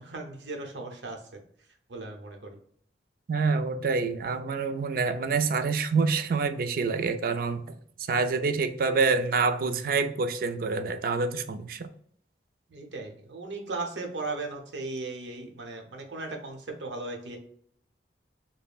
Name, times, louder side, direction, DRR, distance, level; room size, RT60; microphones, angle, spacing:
voice 1, 0.0-1.4 1.9-2.6 12.7-17.4, right 3 dB, 80° right, 3 dB, 0.8 m, -37 dB
voice 2, 3.3-7.7 8.1-11.9, right 4 dB, 55° right, 9 dB, 0.3 m, -27 dB
5.2 x 2.1 x 2.3 m, 0.63 s
head